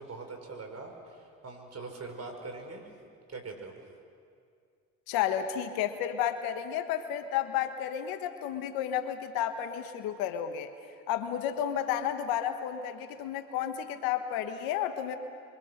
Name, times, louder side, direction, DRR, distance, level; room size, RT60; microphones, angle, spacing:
voice 1, 0.0-2.9 3.3-3.7, right 3 dB, 45° right, 4 dB, 5.9 m, -42 dB
voice 2, 5.1-10.7 11.1-15.2, left 10 dB, 85° left, 8 dB, 1.4 m, -32 dB
29.0 x 24.5 x 6.7 m, 2.2 s
hypercardioid pair, 55°, 35 cm